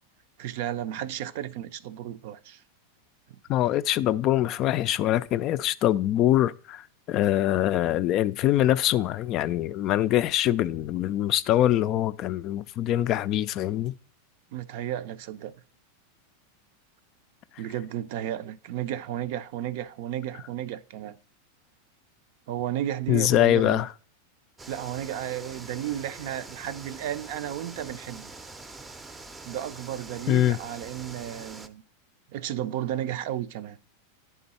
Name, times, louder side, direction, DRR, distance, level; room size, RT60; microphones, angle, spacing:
voice 1, 0.4-2.6 14.5-15.5 17.6-21.2 22.5-23.8 24.7-28.3 29.5-31.8 32.3-33.8, right 11 dB, 60° right, 0.5 m, -33 dB
voice 2, 3.5-13.9 23.1-23.9 30.3-30.6, left 13 dB, 45° left, 0.3 m, -24 dB
sound 1, 24.6-31.7, right 3 dB, 15° right, 0.5 m, -44 dB
10.0 x 3.8 x 4.1 m
hypercardioid pair, 115°, 0 cm